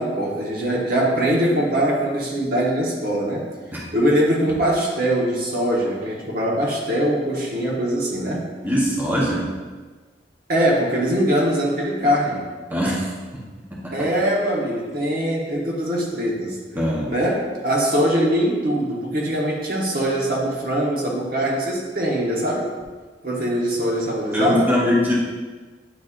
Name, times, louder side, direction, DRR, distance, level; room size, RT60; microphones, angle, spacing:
voice 1, 0.0-3.5 3.9-8.5 10.5-12.5 13.9-16.6 17.1-22.7 23.2-24.7, right 1 dB, 60° right, -2 dB, 1.2 m, -22 dB
voice 2, 8.6-9.5 12.7-13.1 13.3-13.4 13.7-14.1 16.8-17.1 24.3-25.1, left 1 dB, 10° right, -5 dB, 0.9 m, -22 dB
8.9 x 4.2 x 2.5 m, 1.4 s
head